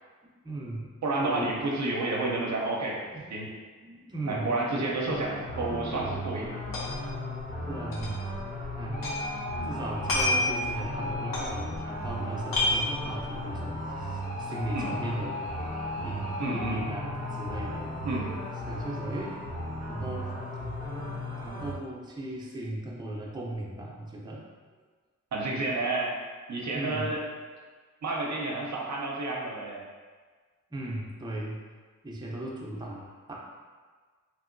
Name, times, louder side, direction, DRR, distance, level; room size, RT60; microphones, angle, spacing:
voice 1, 0.2-1.6 3.1-3.3 3.8-5.0 7.7-8.2 8.8-9.1 9.7-15.5 16.0-17.9 18.7-19.4 19.9-20.3 20.6-21.1 21.4-24.4 25.7-25.8 26.7-27.1 30.7-31.6 32.0-33.4, right 1 dB, 15° right, -4 dB, 0.5 m, -37 dB
voice 2, 1.0-3.0 3.3-3.5 4.3-6.6 9.6-9.7 14.7-14.9 16.4-16.8 18.0-18.3 25.3-26.2 26.5-27.2 28.0-29.8, right 2 dB, 60° right, -2 dB, 0.6 m, -30 dB
sound 1, 5.0-21.7, left 1 dB, 25° left, 0.8 m, -35 dB
sound 2, 6.1-6.2 6.4-7.1 7.4-7.5 7.9-9.3 9.5-12.1 12.4-13.4, left 2 dB, 85° left, 0.8 m, -29 dB
3.0 x 2.6 x 2.5 m, 1.5 s
cardioid pair, 70°, 32 cm